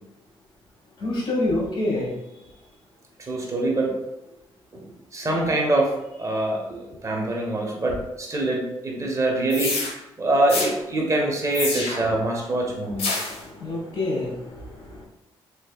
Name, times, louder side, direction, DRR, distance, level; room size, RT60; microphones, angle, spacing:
voice 1, 1.0-2.1 13.3-15.0, left 2 dB, 50° left, -3 dB, 1.4 m, -27 dB
voice 2, 3.2-3.9 4.7-4.8 5.1-5.9 6.2-9.8 10.2-13.0, right 2 dB, 30° right, -1 dB, 1.0 m, -24 dB
sound 1, 9.5-9.9 10.5-10.7 11.5-12.1 13.0-13.4, left 3 dB, 75° left, 0.8 m, -27 dB
3.3 x 3.2 x 2.3 m, 0.90 s
cardioid pair, 75°, 10 cm